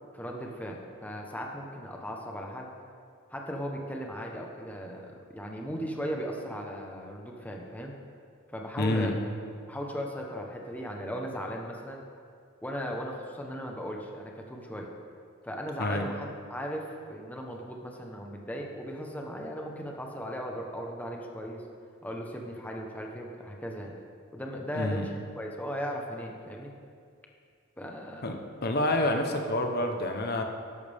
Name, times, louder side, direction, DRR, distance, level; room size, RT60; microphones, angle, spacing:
voice 1, 0.1-2.7 3.3-7.9 8.5-9.2 9.7-12.0 12.6-14.9 15.4-21.6 22.0-23.9 24.3-26.7 27.8-28.4, equal, 10° left, 0 dB, 1.2 m, -37 dB
voice 2, 8.8-9.1 15.8-16.1 24.7-25.1 28.2-30.4, left 1 dB, 50° left, 4 dB, 1.1 m, -28 dB
13.0 x 11.0 x 3.7 m, 2.2 s
head